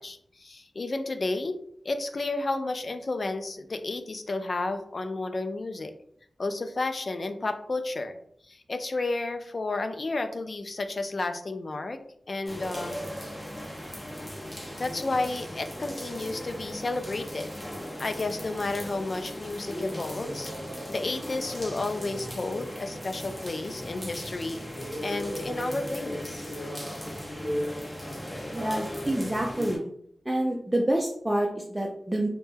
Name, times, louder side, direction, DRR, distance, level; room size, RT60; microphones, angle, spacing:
voice 1, 0.0-1.6 1.8-5.9 6.4-8.2 8.5-12.0 12.3-13.0 13.4-13.5 14.8-17.5 18.0-20.5 20.9-24.6 25.0-26.4, left 2 dB, 55° left, 8 dB, 0.3 m, -32 dB
sound 1, 12.5-29.8, equal, 15° left, 0.8 m, -37 dB
voice 2, 28.5-29.9 30.3-32.3, right 1 dB, 15° right, 0 dB, 0.4 m, -27 dB
2.1 x 2.1 x 3.2 m, 0.68 s
cardioid pair, 55°, 0 cm